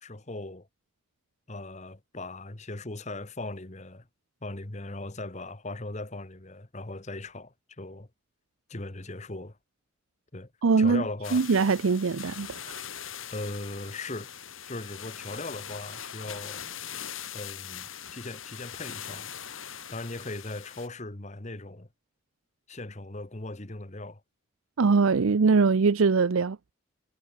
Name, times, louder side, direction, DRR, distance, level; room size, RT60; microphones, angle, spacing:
voice 1, 0.0-0.7 1.5-4.1 4.4-8.1 8.7-9.6 10.3-10.5 10.8-11.4 13.3-14.3 14.6-16.6 17.3-19.3 19.9-21.9 22.7-24.2, left 2 dB, 35° left, 1.4 m, -38 dB
voice 2, 10.6-11.0 11.3-12.8 24.8-26.7, right 4 dB, 80° right, 0.6 m, -22 dB
sound 1, 11.2-20.9, left 9 dB, 70° left, 7.1 m, -41 dB
head